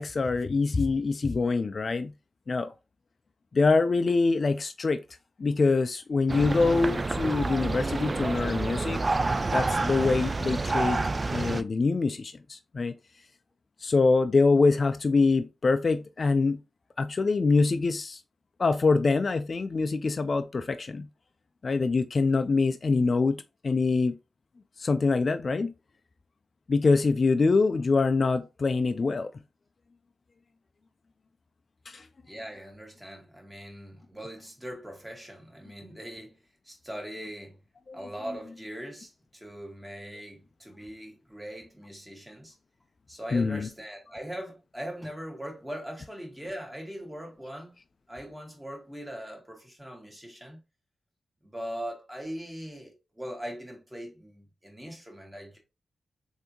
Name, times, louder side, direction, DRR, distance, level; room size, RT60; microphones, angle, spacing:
voice 1, 0.0-2.1 2.5-2.7 3.5-5.0 5.4-9.0 9.5-11.0 11.3-12.9 13.8-16.6 17.0-18.2 18.6-21.1 21.6-24.2 24.8-25.7 26.7-29.3 31.9-32.1 37.9-38.0 43.3-43.7, left 4 dB, 55° left, 0.3 m, -24 dB
sound 1, 6.3-11.6, right 3 dB, 40° right, 0.3 m, -28 dB
voice 2, 32.2-37.6 37.9-42.5 43.1-47.8 48.1-50.6 51.4-55.6, equal, 10° right, 1.7 m, -41 dB
3.4 x 2.7 x 2.9 m
supercardioid pair, 45°, 0 cm